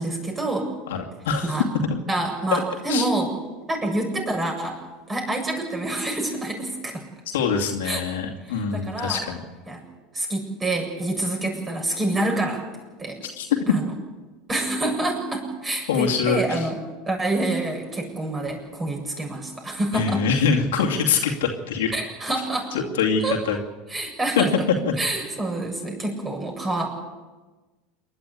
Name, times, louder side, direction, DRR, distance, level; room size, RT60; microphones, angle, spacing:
voice 1, 0.0-0.7 1.4-1.7 2.1-3.3 3.7-4.8 5.1-7.1 7.8-8.0 8.5-9.2 9.7-9.8 10.1-12.6 13.0-13.2 13.7-13.9 14.5-16.8 17.1-20.2 21.9-22.7 23.2-23.4 23.9-24.7 25.0-26.9, right 2 dB, 20° right, 1 dB, 7.6 m, -27 dB
voice 2, 0.9-1.5 1.9-2.0 2.5-2.6 2.9-3.0 7.3-9.4 13.4-13.6 15.9-16.7 19.9-21.9 22.7-23.6 24.4-24.5 24.8-24.9, left 6 dB, 75° left, 1 dB, 2.5 m, -24 dB
28.0 x 11.5 x 8.5 m, 1.2 s
hypercardioid pair, 85°, 0 cm